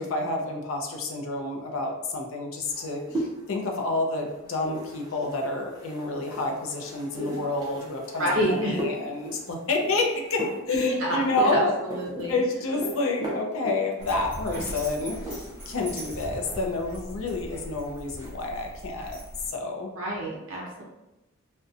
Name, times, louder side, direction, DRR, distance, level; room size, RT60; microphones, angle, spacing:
voice 1, 0.0-11.8 12.3-15.4 15.7-19.2 19.5-19.9, left 2 dB, 70° left, 2 dB, 0.4 m, -29 dB
sound 1, 2.7-15.8 16.0-16.7, equal, 15° right, 0.5 m, -38 dB
voice 2, 8.2-8.8 10.7-12.4 20.0-20.8, equal, 65° right, -3 dB, 0.5 m, -28 dB
Dog, 14.0-19.5, equal, 10° left, 0.8 m, -40 dB
2.6 x 2.1 x 2.4 m, 0.98 s
head